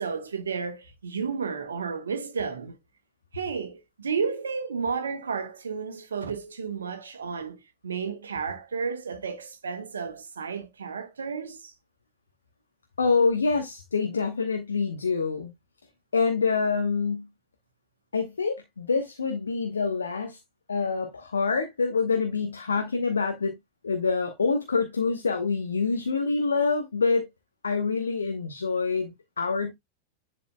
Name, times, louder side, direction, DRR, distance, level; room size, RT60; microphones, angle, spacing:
voice 1, 0.0-2.8 3.3-11.7, right 5 dB, 70° right, 1.1 m, -32 dB
voice 2, 13.0-15.5 16.1-17.3 18.1-20.4 20.7-23.5 23.8-27.3 27.6-29.7, left 4 dB, 75° left, 0.9 m, -26 dB
10.5 x 4.1 x 2.2 m
figure-of-eight pair, 90°, 0 cm